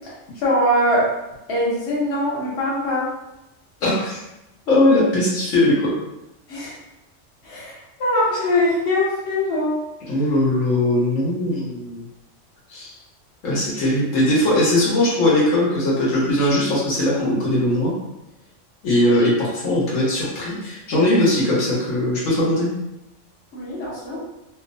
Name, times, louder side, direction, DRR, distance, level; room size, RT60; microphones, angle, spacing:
voice 1, 0.4-1.1 1.5-3.1 6.5-6.8 7.4-9.8 23.5-24.2, left 1 dB, 60° left, -7 dB, 1.1 m, -22 dB
voice 2, 3.8-4.2 4.7-5.9 10.1-12.0 12.7-12.9 13.4-17.9 18.8-22.7, left 1 dB, 85° left, -6 dB, 1.2 m, -19 dB
2.9 x 2.0 x 2.5 m, 0.93 s
omnidirectional pair, 1.3 m